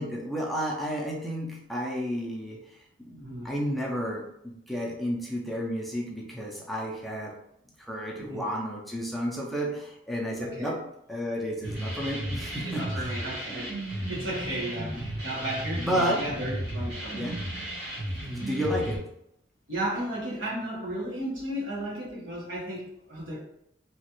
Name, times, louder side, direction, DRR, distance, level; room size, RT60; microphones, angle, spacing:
voice 1, 0.0-3.2 3.4-7.4 7.8-13.1 14.9-15.0 15.8-16.3 17.1-17.4 18.3-19.1, equal, ahead, -3 dB, 0.4 m, -32 dB
voice 2, 3.1-3.5 8.2-8.4 10.4-10.7 12.6-17.3 19.7-23.4, right 1 dB, 90° right, -6 dB, 1.3 m, -34 dB
sound 1, 11.6-19.0, right 1 dB, 60° right, 1.2 m, -34 dB
3.0 x 2.4 x 2.9 m, 0.78 s
head